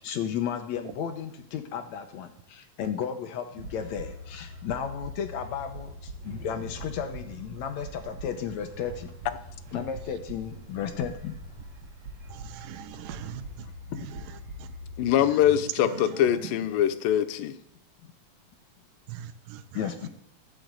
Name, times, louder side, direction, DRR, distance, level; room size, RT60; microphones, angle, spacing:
voice 1, 0.0-9.1 9.7-11.4 13.6-14.2 19.7-20.1, left 8 dB, 70° left, 1.8 m, -34 dB
sound 1, 3.5-15.1, right 1 dB, 55° right, 2.8 m, -43 dB
voice 2, 12.3-13.7 14.6-14.7 19.1-19.6, right 11 dB, 85° right, 2.5 m, -42 dB
voice 3, 15.0-17.6, left 11 dB, 90° left, 2.6 m, -23 dB
14.5 x 6.3 x 8.1 m
omnidirectional pair, 3.9 m